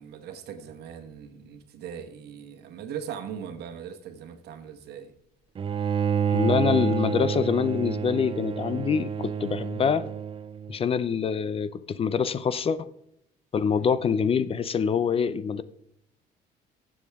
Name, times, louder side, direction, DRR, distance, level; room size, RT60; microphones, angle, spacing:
voice 1, 0.0-5.1 13.7-14.0, right 8 dB, 75° right, 1.3 m, -40 dB
Bowed string instrument, 5.6-10.8, right 8 dB, 30° right, 0.4 m, -28 dB
voice 2, 6.3-10.0 10.7-12.9 13.5-15.6, left 6 dB, 35° left, 0.5 m, -25 dB
15.0 x 7.1 x 3.5 m
cardioid pair, 110°, 17 cm